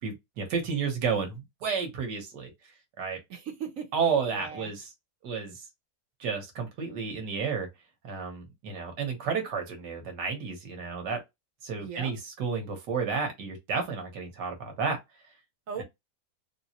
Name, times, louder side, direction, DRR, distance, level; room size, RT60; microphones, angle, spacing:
voice 1, 0.0-2.5 3.0-3.2 3.9-4.9 5.2-5.7 6.2-7.7 8.0-11.2 11.6-15.0, right 5 dB, 85° right, 1.7 m, -31 dB
voice 2, 3.3-3.9 4.3-4.7 11.8-12.1 15.7-15.8, right 6 dB, 55° right, 1.2 m, -37 dB
3.7 x 2.8 x 2.8 m
omnidirectional pair, 1.8 m